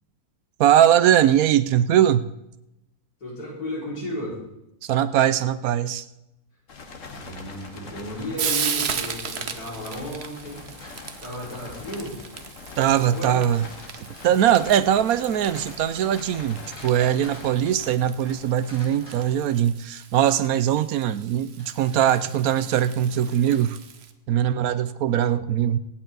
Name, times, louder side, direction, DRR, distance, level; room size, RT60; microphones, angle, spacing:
voice 1, 0.6-2.3 4.8-6.0 12.8-13.6 14.2-23.8 24.3-25.8, right 10 dB, 75° right, 14 dB, 1.1 m, -21 dB
voice 2, 3.2-4.4 7.1-10.7 11.2-12.2 12.8-13.4 24.4-24.7, equal, 80° left, -6 dB, 5.7 m, -34 dB
sound 1, 6.7-19.5, left 4 dB, 60° left, 1.7 m, -43 dB
Frying (food), 7.2-24.1, right 7 dB, 50° right, 1.0 m, -36 dB
sound 2, 10.8-12.1 13.1-14.4 15.6-18.3 18.7-20.0 21.6-24.1, equal, 35° left, 3.6 m, -50 dB
24.5 x 9.3 x 4.0 m, 0.88 s
omnidirectional pair, 1.6 m